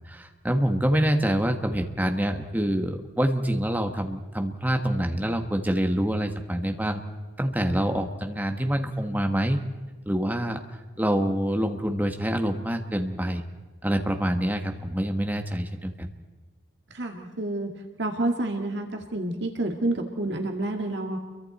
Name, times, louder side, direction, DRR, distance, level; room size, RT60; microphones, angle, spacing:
voice 1, 0.1-7.0 7.4-9.6 10.0-10.6 11.0-13.4 13.8-16.1, equal, 10° right, 5 dB, 1.5 m, -26 dB
voice 2, 16.9-17.7 18.0-21.2, right 2 dB, 60° right, 3 dB, 2.1 m, -29 dB
29.5 x 23.5 x 4.3 m, 1.3 s
head